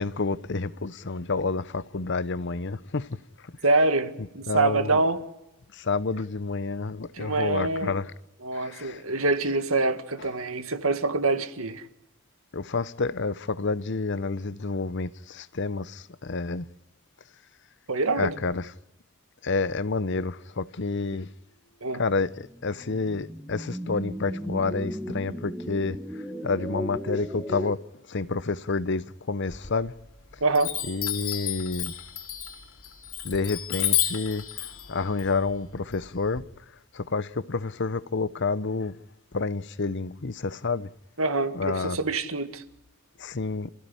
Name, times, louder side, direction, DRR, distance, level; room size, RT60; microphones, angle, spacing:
voice 1, 0.0-3.5 4.2-5.0 5.7-8.1 8.5-9.0 12.5-16.7 18.2-18.7 19.4-21.3 21.9-27.8 28.1-29.9 30.9-31.9 33.2-36.5 36.9-38.9 39.3-40.9 41.5-42.0 43.2-43.7, left 3 dB, 55° left, 0.8 m, -29 dB
voice 2, 3.6-5.2 7.1-7.9 8.4-11.8 17.9-18.4 21.8-22.0 30.4-30.7 41.2-42.6, right 3 dB, 70° right, 1.9 m, -25 dB
sound 1, 22.3-27.7, equal, 5° right, 1.7 m, -36 dB
Chime, 29.5-30.2 30.5-36.4, left 12 dB, 70° left, 3.2 m, -31 dB
28.0 x 16.0 x 10.0 m
head